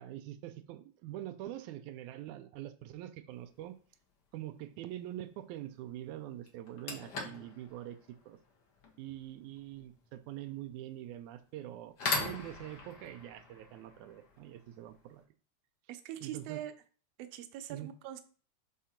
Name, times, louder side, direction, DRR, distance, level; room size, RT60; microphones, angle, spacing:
voice 1, 0.0-3.8 4.3-8.4 9.0-15.2 16.2-16.6 17.7-17.9, right 13 dB, 90° right, 9 dB, 2.1 m, -44 dB
sound 1, 3.5-3.8 5.8-5.9 6.5-15.2, left 4 dB, 60° left, 1.0 m, -42 dB
voice 2, 15.9-16.7 17.2-18.2, right 11 dB, 75° right, 8 dB, 1.7 m, -42 dB
5.0 x 3.7 x 5.7 m, 0.39 s
omnidirectional pair, 3.3 m